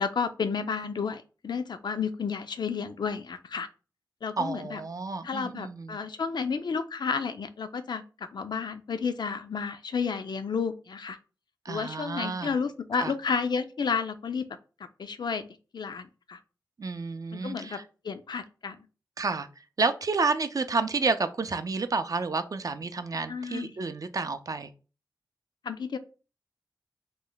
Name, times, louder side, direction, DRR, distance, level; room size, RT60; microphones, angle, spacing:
voice 1, 0.0-3.7 4.2-4.8 5.2-8.0 8.3-11.2 11.7-14.5 15.0-15.4 15.7-16.4 17.3-17.8 18.0-18.8 23.3-23.8 25.6-26.0, left 5 dB, 70° left, 10 dB, 0.4 m, -31 dB
voice 2, 4.4-6.0 11.7-12.6 13.0-13.1 16.8-17.8 19.2-19.5 19.8-24.7, right 4 dB, 50° right, 10 dB, 0.4 m, -30 dB
3.1 x 2.1 x 3.8 m, 0.34 s
wide cardioid pair, 65°, 8 cm